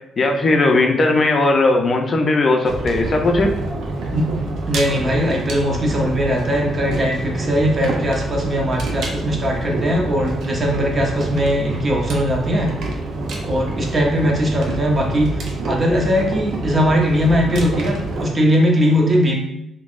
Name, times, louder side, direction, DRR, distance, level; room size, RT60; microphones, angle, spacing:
voice 1, 0.2-3.5, left 2 dB, 45° left, 3 dB, 0.5 m, -17 dB
sound 1, 2.7-18.2, right 2 dB, 70° right, 0.5 m, -27 dB
voice 2, 4.7-12.7 13.4-19.4, equal, 35° right, 0 dB, 0.7 m, -19 dB
3.3 x 2.2 x 2.4 m, 0.82 s
cardioid pair, 90°, 0 cm